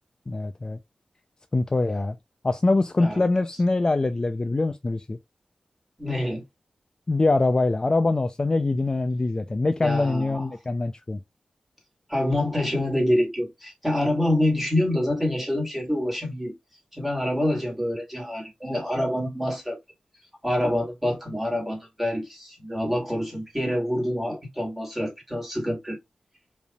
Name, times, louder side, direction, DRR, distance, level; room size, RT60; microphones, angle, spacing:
voice 1, 0.3-0.8 1.5-2.2 2.4-5.2 7.1-11.2, left 2 dB, 35° left, 0.5 m, -23 dB
voice 2, 6.0-6.4 9.8-10.4 12.1-16.5 16.9-19.8 20.4-26.0, left 1 dB, 5° right, 2.5 m, -26 dB
5.1 x 3.4 x 2.4 m
wide cardioid pair, 75°, 2 cm